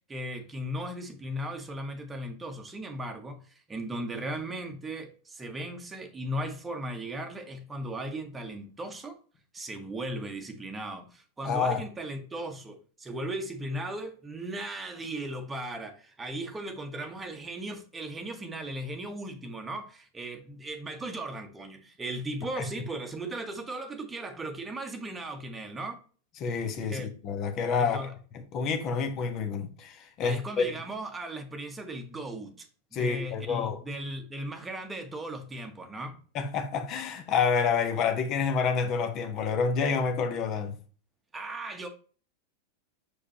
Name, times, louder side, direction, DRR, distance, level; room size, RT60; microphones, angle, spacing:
voice 1, 0.1-9.2 9.5-26.0 26.8-27.1 27.8-28.1 30.2-32.7 32.9-36.2 41.3-41.9, right 1 dB, 15° right, 1.1 m, -37 dB
voice 2, 11.4-11.8 22.6-22.7 26.4-28.1 28.5-30.7 32.9-33.8 36.3-40.7, left 5 dB, 35° left, 1.2 m, -28 dB
6.7 x 5.0 x 2.8 m
figure-of-eight pair, 90°, 0 cm